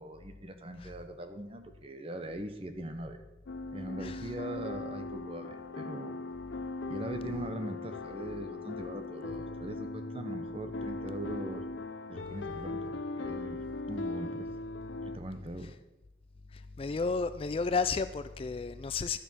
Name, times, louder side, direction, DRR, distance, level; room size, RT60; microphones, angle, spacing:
voice 1, 0.0-3.2 3.7-6.2 6.9-11.6 12.1-14.5 15.0-15.7, right 1 dB, 30° right, 8 dB, 0.9 m, -41 dB
sound 1, 3.5-15.2, left 2 dB, 75° left, 0.6 m, -39 dB
voice 2, 16.5-19.2, left 4 dB, 30° left, 12 dB, 0.3 m, -32 dB
12.0 x 6.7 x 6.1 m, 1.0 s
head